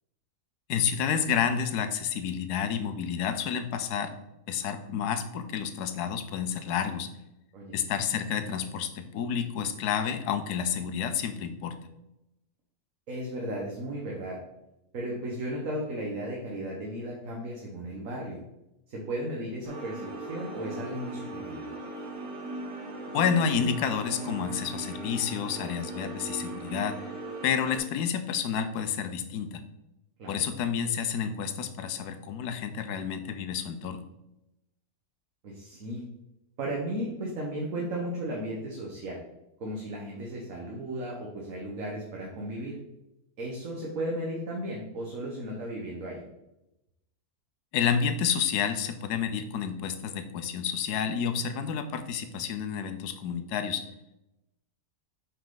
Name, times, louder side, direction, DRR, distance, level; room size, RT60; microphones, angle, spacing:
voice 1, 0.7-4.1 4.5-7.1 7.7-11.8 23.1-27.0 27.4-29.6 30.3-34.1 47.7-53.8, left 7 dB, 90° left, 9 dB, 1.2 m, -30 dB
voice 2, 13.1-14.4 14.9-18.4 18.9-21.6 30.2-30.5 35.4-36.0 36.6-39.2 39.6-42.8 43.4-46.2, right 1 dB, 60° right, -2 dB, 1.5 m, -35 dB
sound 1, 19.6-27.8, right 2 dB, 90° right, 2.3 m, -38 dB
6.3 x 5.6 x 3.9 m, 0.90 s
omnidirectional pair, 1.7 m